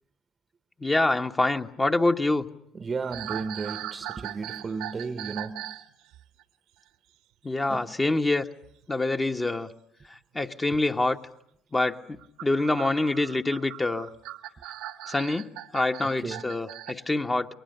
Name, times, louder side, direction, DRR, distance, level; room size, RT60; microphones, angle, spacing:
voice 1, 0.8-2.5 7.4-8.5 8.9-9.7 10.3-11.2 11.7-12.0 12.4-14.1 15.1-17.5, left 2 dB, 20° left, 1.2 m, -25 dB
voice 2, 2.7-5.7 7.7-7.9 16.2-16.5, right 4 dB, 35° right, 0.9 m, -34 dB
sound 1, 3.0-5.9 6.1-6.4 8.6-8.8 10.1-10.2 12.1-16.9, right 13 dB, 70° right, 1.1 m, -39 dB
30.0 x 23.0 x 6.8 m
hypercardioid pair, 60°, 0 cm